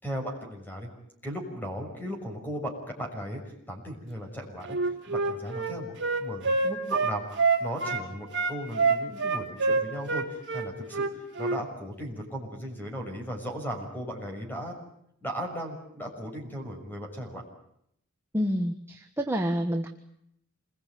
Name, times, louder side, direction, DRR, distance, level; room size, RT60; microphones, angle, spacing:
voice 1, 0.0-0.9 1.2-3.4 3.7-14.8 15.2-17.4, equal, 10° left, 2 dB, 6.2 m, -37 dB
Wind instrument woodwind instrument, 4.6-8.1 8.3-11.6, right 4 dB, 55° right, 3.5 m, -26 dB
voice 2, 18.3-19.9, equal, 10° right, 4 dB, 1.5 m, -28 dB
27.5 x 20.5 x 9.4 m, 0.73 s
head